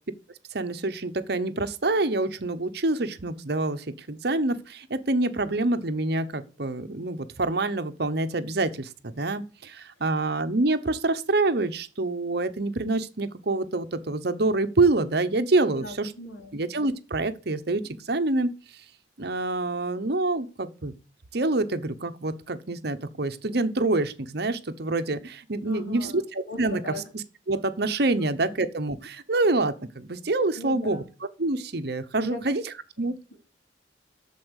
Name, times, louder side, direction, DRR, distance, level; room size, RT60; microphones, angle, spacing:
voice 1, 0.5-8.9 9.2-16.1 16.5-17.8 18.1-18.5 19.2-20.9 21.3-26.8 27.1-31.0 31.4-33.2, right 2 dB, 55° right, 1.0 m, -26 dB
voice 2, 15.7-16.6 25.6-26.2 26.5-27.0 28.2-28.5 30.6-31.0 32.2-32.4 33.0-33.4, left 1 dB, 75° left, 4.0 m, -39 dB
8.5 x 7.1 x 8.2 m
head